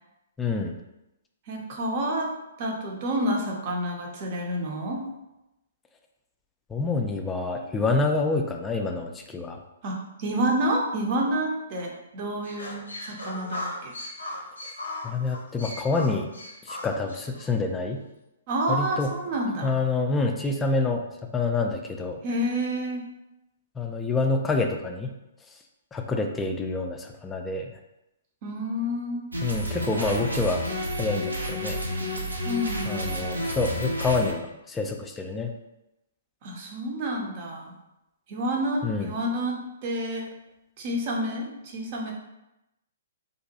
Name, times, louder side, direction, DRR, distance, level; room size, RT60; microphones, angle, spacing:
voice 1, 0.4-0.8 6.7-9.6 15.0-16.3 16.7-18.0 18.7-19.1 19.6-22.2 23.8-25.1 25.9-27.7 29.4-30.6 31.0-31.8 32.8-35.5 38.8-39.1, left 3 dB, 15° left, 3 dB, 0.3 m, -27 dB
voice 2, 1.5-2.3 2.6-5.0 9.8-13.9 18.5-19.7 22.2-23.0 28.4-29.2 32.4-33.2 36.4-37.7 38.3-40.3 40.8-42.1, right 1 dB, 40° right, 0 dB, 0.6 m, -29 dB
sound 1, 12.4-17.5, left 1 dB, 80° left, 0.5 m, -37 dB
sound 2, 29.3-34.3, equal, 90° right, 0.5 m, -30 dB
2.6 x 2.2 x 2.8 m, 0.92 s
figure-of-eight pair, 120°, 0 cm